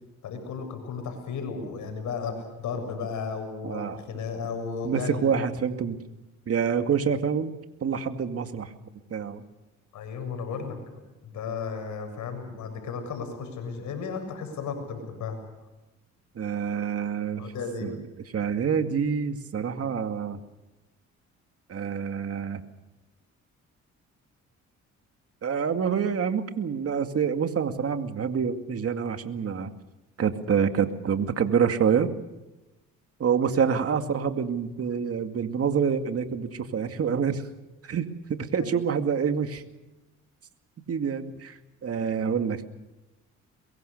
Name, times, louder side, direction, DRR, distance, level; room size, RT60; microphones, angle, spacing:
voice 1, 0.2-5.2 9.9-10.8 11.2-15.4 17.4-17.9 38.6-38.7, left 5 dB, 75° left, 6 dB, 7.2 m, -34 dB
voice 2, 3.6-4.0 4.8-6.0 6.5-7.5 7.8-8.7 9.1-9.4 16.4-17.5 17.8-17.9 18.3-20.4 21.7-22.6 25.4-29.7 30.2-32.1 33.2-37.4 37.8-39.6 40.9-42.6, right 7 dB, 50° right, 7 dB, 2.3 m, -27 dB
23.5 x 22.5 x 6.7 m, 1.0 s
cardioid pair, 90°, 30 cm